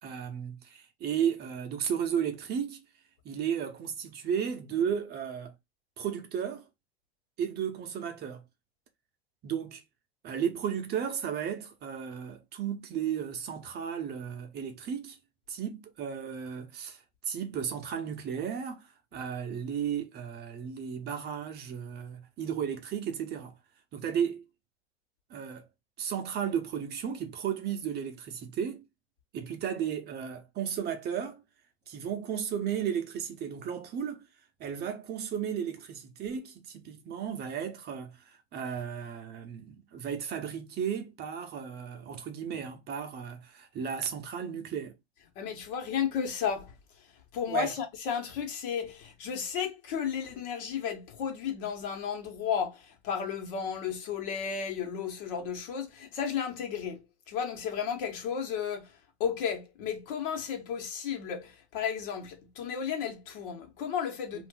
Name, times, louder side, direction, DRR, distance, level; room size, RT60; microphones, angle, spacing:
voice 1, 0.0-2.8 3.2-5.5 6.0-6.7 7.4-8.4 9.4-9.8 10.2-15.2 15.5-23.5 23.9-24.4 25.3-25.7 26.0-28.8 29.3-31.4 31.9-34.3 34.6-45.0 47.5-47.8, right 8 dB, 30° right, 0.7 m, -34 dB
voice 2, 45.3-46.7 47.3-64.5, left 7 dB, 60° left, 1.2 m, -33 dB
2.6 x 2.6 x 3.7 m
hypercardioid pair, 110°, 31 cm